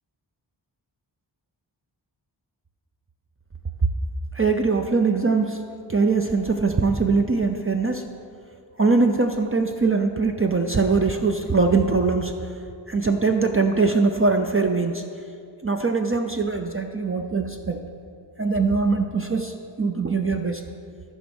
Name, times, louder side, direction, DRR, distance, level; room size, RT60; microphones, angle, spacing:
voice 1, 4.3-5.6 5.9-8.0 8.8-12.3 12.9-15.0 15.6-17.8 18.4-20.6, right 4 dB, 30° right, 4 dB, 0.5 m, -22 dB
13.5 x 5.1 x 6.2 m, 2.4 s
wide cardioid pair, 75°, 46 cm